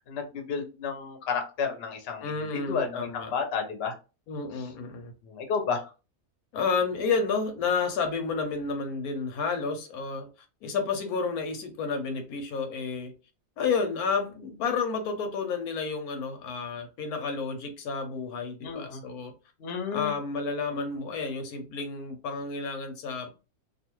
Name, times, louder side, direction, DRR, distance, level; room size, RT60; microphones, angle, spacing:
voice 1, 0.0-3.9 5.2-5.9 18.6-19.0 19.6-20.1, left 6 dB, 55° left, 4 dB, 0.8 m, -32 dB
voice 2, 2.2-3.3 4.3-5.1 6.5-10.3 10.6-13.1 13.6-19.3 19.9-23.3, left 5 dB, 85° left, 6 dB, 1.1 m, -30 dB
2.5 x 2.4 x 3.0 m, 0.31 s
omnidirectional pair, 1.5 m